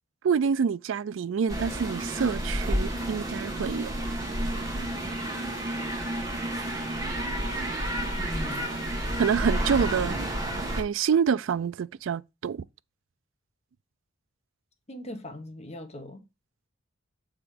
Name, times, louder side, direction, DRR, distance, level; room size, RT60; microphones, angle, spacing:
voice 1, 0.2-3.9 9.2-10.3 10.8-12.6, right 6 dB, 70° right, 0.3 m, -27 dB
sound 1, 1.5-10.8, right 1 dB, 15° right, 2.1 m, -30 dB
voice 2, 8.2-8.9 14.9-16.2, left 1 dB, 35° left, 1.1 m, -40 dB
6.9 x 3.7 x 5.0 m
head